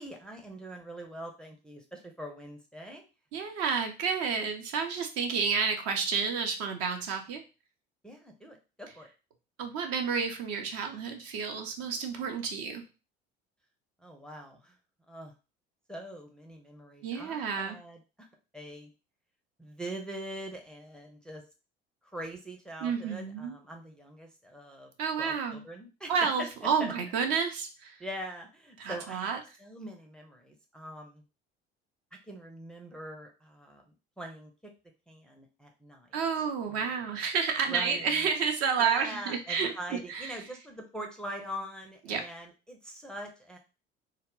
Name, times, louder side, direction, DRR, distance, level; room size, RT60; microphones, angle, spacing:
voice 1, 0.0-3.1 8.0-9.1 14.0-14.8 15.1-15.3 15.9-18.3 18.5-18.9 19.6-21.4 22.1-24.9 25.2-26.9 28.0-31.2 32.3-34.5 35.1-36.1 36.7-37.0 37.7-38.3 38.8-43.6, right 1 dB, 5° left, 1 dB, 0.5 m, -43 dB
voice 2, 3.3-7.4 9.6-12.8 17.0-17.8 22.8-23.6 25.0-25.6 26.1-27.9 28.8-29.4 36.1-40.3 42.1-42.2, right 6 dB, 55° right, 4 dB, 0.6 m, -30 dB
2.1 x 2.0 x 3.7 m, 0.31 s
figure-of-eight pair, 60°, 30 cm